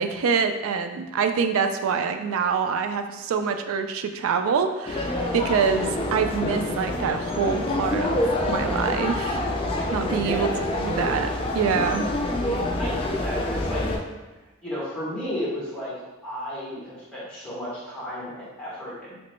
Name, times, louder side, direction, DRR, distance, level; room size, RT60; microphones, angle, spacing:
voice 1, 0.0-9.4 9.9-10.5 10.8-11.3 11.5-12.1, right 6 dB, 75° right, 7 dB, 0.3 m, -25 dB
sound 1, 4.9-14.0, left 1 dB, 25° left, 0.3 m, -27 dB
voice 2, 9.9-10.6 12.5-13.9 14.6-15.9 16.2-19.2, equal, 5° left, -9 dB, 1.2 m, -33 dB
3.2 x 2.9 x 3.0 m, 1.1 s
head